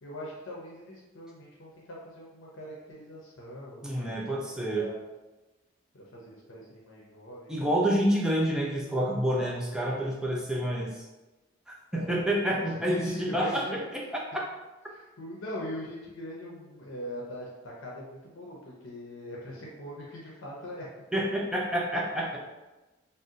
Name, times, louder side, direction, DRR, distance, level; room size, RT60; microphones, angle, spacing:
voice 1, 0.0-5.0 5.9-7.7 11.9-12.2 12.5-13.8 14.9-20.9, equal, 80° left, -4 dB, 0.6 m, -42 dB
voice 2, 3.8-4.9 7.5-11.0 11.9-14.2 21.1-22.4, right 1 dB, 5° right, -3 dB, 0.4 m, -28 dB
2.6 x 2.1 x 3.7 m, 1.1 s
head